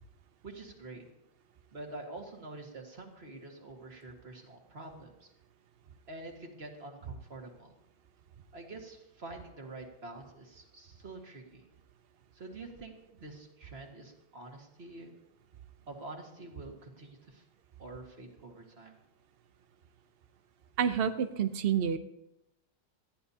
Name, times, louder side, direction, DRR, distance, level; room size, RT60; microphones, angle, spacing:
voice 1, 0.4-1.1 1.7-5.3 6.1-7.7 8.5-11.7 12.3-15.1 15.9-17.4 17.8-18.9, right 2 dB, 35° right, 2 dB, 1.9 m, -47 dB
voice 2, 20.8-22.0, right 8 dB, 85° right, 9 dB, 0.5 m, -28 dB
19.0 x 14.0 x 2.8 m, 0.86 s
omnidirectional pair, 2.0 m